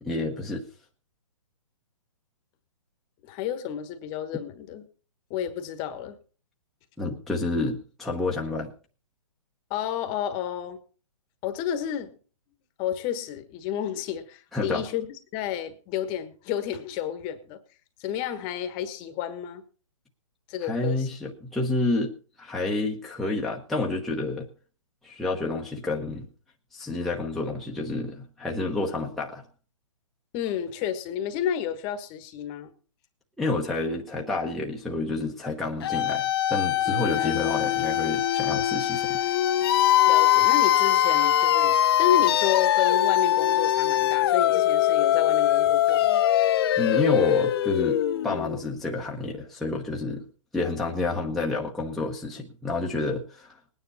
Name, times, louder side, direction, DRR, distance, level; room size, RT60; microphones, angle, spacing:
voice 1, 0.0-0.6 7.0-8.7 14.5-14.9 20.6-22.1 22.4-24.5 25.0-26.3 26.7-29.4 33.4-39.2 46.8-50.2 50.5-53.6, left 2 dB, ahead, -3 dB, 1.1 m, -29 dB
voice 2, 3.2-4.8 5.3-6.2 9.7-10.8 11.4-12.1 12.8-15.1 15.3-17.6 18.0-19.6 20.5-21.1 30.3-32.7 37.1-37.5 40.1-46.2, left 10 dB, 25° left, 10 dB, 1.3 m, -31 dB
sound 1, 35.8-48.6, left 12 dB, 45° left, 0.7 m, -22 dB
19.5 x 9.7 x 4.1 m, 0.38 s
hypercardioid pair, 145°, 18 cm